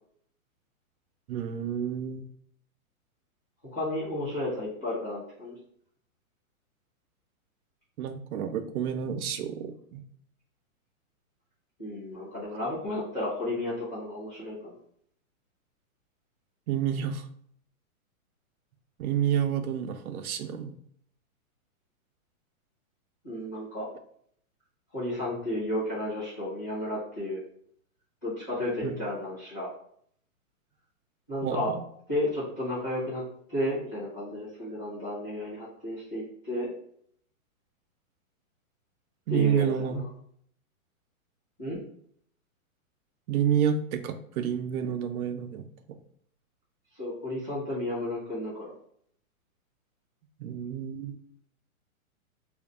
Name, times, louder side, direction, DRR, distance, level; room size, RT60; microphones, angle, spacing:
voice 1, 1.3-2.2 8.0-10.0 16.7-17.3 19.0-20.8 28.8-28.9 31.4-31.8 39.3-40.0 43.3-45.7 50.4-51.2, right 8 dB, 85° right, 8 dB, 0.5 m, -29 dB
voice 2, 3.7-5.6 11.8-14.7 23.2-23.9 24.9-27.4 28.2-29.7 31.3-31.7 32.1-33.2 33.5-36.7 39.3-40.0 41.6-41.8 46.9-48.7, left 1 dB, 15° left, -11 dB, 0.5 m, -32 dB
2.5 x 2.0 x 3.5 m, 0.64 s
hypercardioid pair, 180°, 42 cm